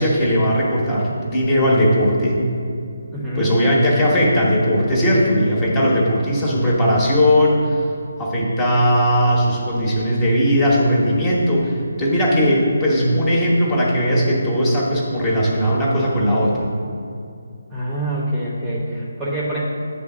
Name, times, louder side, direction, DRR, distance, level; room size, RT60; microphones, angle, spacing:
voice 1, 0.0-2.4 3.4-7.8 8.2-16.7, equal, 15° left, -4 dB, 1.2 m, -18 dB
voice 2, 3.1-3.5 4.9-6.0 17.7-19.6, right 1 dB, 10° right, -7 dB, 1.0 m, -26 dB
9.1 x 3.4 x 6.1 m, 2.5 s
hypercardioid pair, 165°, 0 cm